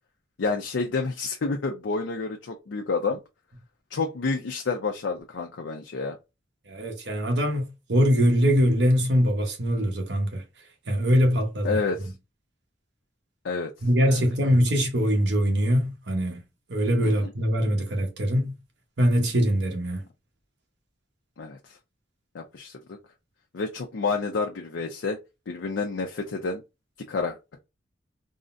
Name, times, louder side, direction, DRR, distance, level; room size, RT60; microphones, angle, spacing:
voice 1, 0.4-3.2 3.9-6.2 11.6-12.1 13.4-13.7 14.1-14.2 17.0-17.3 21.4-21.8 22.3-23.0 23.5-25.2 25.5-26.6 27.1-27.4, left 4 dB, 85° left, 0.5 m, -29 dB
voice 2, 6.7-10.4 10.9-11.8 13.8-16.4 16.7-18.5 19.0-20.0, equal, 65° right, 0.9 m, -23 dB
3.7 x 2.0 x 2.5 m
head